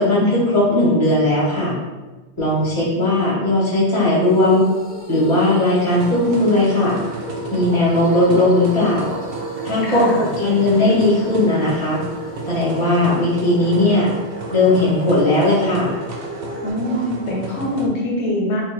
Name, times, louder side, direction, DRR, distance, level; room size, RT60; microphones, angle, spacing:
voice 1, 0.0-1.8 2.4-4.6 5.1-7.0 7.5-9.1 9.6-12.0 12.4-14.1 14.5-15.9, left 1 dB, 25° left, -10 dB, 1.6 m, -17 dB
sound 1, 4.2-16.7, left 1 dB, 65° left, 0.7 m, -38 dB
sound 2, 5.9-17.9, right 2 dB, 65° right, 0.7 m, -32 dB
voice 2, 9.8-10.2 16.6-18.6, left 1 dB, 90° left, -2 dB, 1.0 m, -23 dB
4.5 x 2.3 x 3.0 m, 1.2 s
omnidirectional pair, 1.1 m